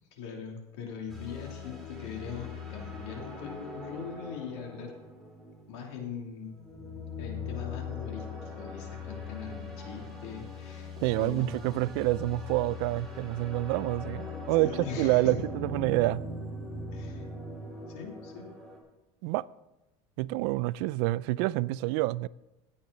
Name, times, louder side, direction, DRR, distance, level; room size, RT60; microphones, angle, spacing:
voice 1, 0.1-4.9 5.7-6.5 7.2-11.8 14.6-15.4 16.9-17.3 17.9-18.5, left 6 dB, 85° left, 3.2 m, -41 dB
sound 1, 1.1-18.8, left 3 dB, ahead, 3.4 m, -41 dB
voice 2, 11.0-16.2 19.2-19.5 20.2-22.3, right 18 dB, 75° right, 0.4 m, -28 dB
15.5 x 8.7 x 4.0 m
cardioid pair, 140°, 14 cm